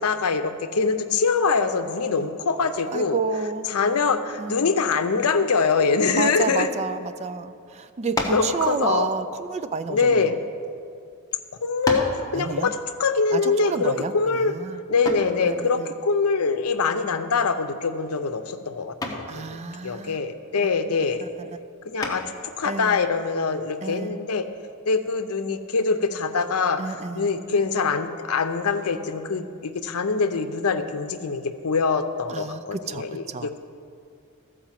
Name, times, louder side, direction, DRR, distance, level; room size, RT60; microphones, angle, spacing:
voice 1, 0.0-3.2 3.7-6.7 8.3-9.1 9.9-10.3 11.6-14.5 14.9-21.2 21.9-24.5 24.9-33.6, left 4 dB, 80° left, 9 dB, 0.6 m, -24 dB
voice 2, 2.9-3.7 4.4-4.8 6.1-10.4 12.3-12.7 13.3-14.8 15.5-15.9 19.3-20.2 21.2-21.6 22.6-23.0 23.8-24.2 26.8-27.3 32.3-33.6, right 4 dB, 30° right, 11 dB, 0.3 m, -30 dB
sound 1, 8.1-8.5 9.5-10.6 11.3-11.4 11.8-12.2 15.0-15.4 17.3-17.7 18.0-18.4 19.0-19.3 22.0-22.5, left 2 dB, 15° left, 1.0 m, -30 dB
13.5 x 4.9 x 7.4 m, 2.4 s
head